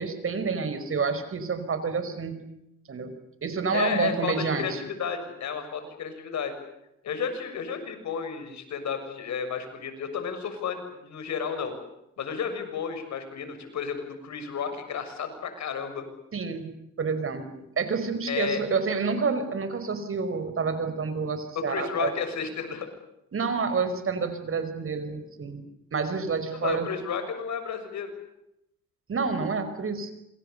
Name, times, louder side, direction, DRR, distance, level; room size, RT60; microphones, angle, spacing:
voice 1, 0.0-2.4 2.9-3.1 3.4-4.8 16.3-16.7 17.0-22.1 23.3-25.6 25.9-26.9 29.1-30.1, right 5 dB, 45° right, 10 dB, 5.5 m, -28 dB
voice 2, 3.7-6.5 7.0-11.7 12.2-16.1 18.3-18.6 21.6-22.9 26.5-28.1, left 6 dB, 65° left, 8 dB, 6.9 m, -32 dB
27.5 x 27.0 x 6.9 m, 0.83 s
cardioid pair, 90°, 30 cm